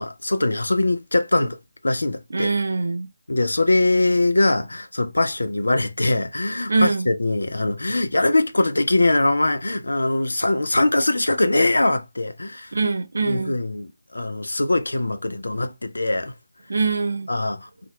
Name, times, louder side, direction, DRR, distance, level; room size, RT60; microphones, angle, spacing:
voice 1, 0.0-1.6 1.8-2.5 3.3-12.7 13.3-16.3 17.3-17.7, left 2 dB, 75° left, 0.5 m, -22 dB
voice 2, 2.3-3.1 6.7-7.1 12.7-13.5 16.7-17.3, right 4 dB, 60° right, 0.6 m, -23 dB
2.8 x 2.5 x 3.0 m
figure-of-eight pair, 155°, 0 cm